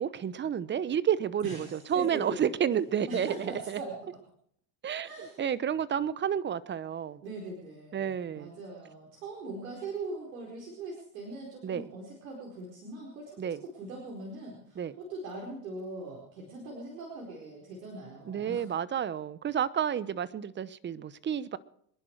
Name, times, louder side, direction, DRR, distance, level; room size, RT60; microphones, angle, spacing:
voice 1, 0.0-3.8 4.8-5.1 5.4-7.2 7.9-8.5 11.6-11.9 13.4-13.6 14.8-14.9 18.3-21.6, right 8 dB, 25° right, 0.9 m, -30 dB
voice 2, 1.4-2.5 3.1-3.9 5.0-5.4 7.2-18.6, right 3 dB, 80° right, 4.7 m, -41 dB
26.0 x 11.0 x 4.7 m
hypercardioid pair, 95°, 48 cm